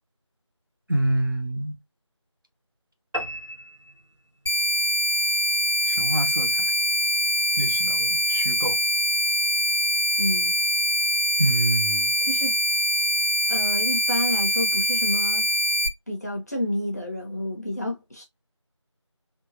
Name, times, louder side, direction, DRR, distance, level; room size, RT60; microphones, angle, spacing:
voice 1, 0.9-1.8 5.9-6.6 7.6-8.8 11.4-12.1, right 1 dB, 45° right, 0.6 m, -26 dB
sound 1, 3.1-4.7, equal, 70° right, 1.2 m, -35 dB
sound 2, 4.5-15.9, equal, 55° left, 0.9 m, -23 dB
voice 2, 10.2-10.6 12.3-12.5 13.5-15.5 16.1-18.2, left 1 dB, 30° left, 1.0 m, -29 dB
3.6 x 2.2 x 2.6 m
figure-of-eight pair, 175°, 16 cm